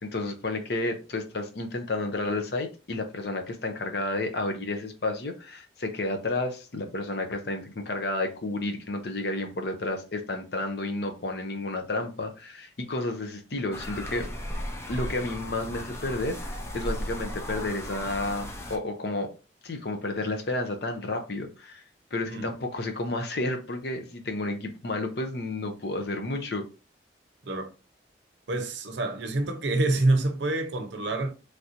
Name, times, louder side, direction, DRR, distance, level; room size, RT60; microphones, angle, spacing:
voice 1, 0.0-14.3 14.9-19.3 19.6-21.8 22.1-26.7, left 2 dB, 60° left, 0.6 m, -31 dB
sound 1, 13.7-18.8, left 1 dB, 15° left, 0.4 m, -36 dB
voice 2, 28.5-31.3, right 2 dB, 75° right, 0.6 m, -27 dB
3.3 x 2.5 x 2.8 m
head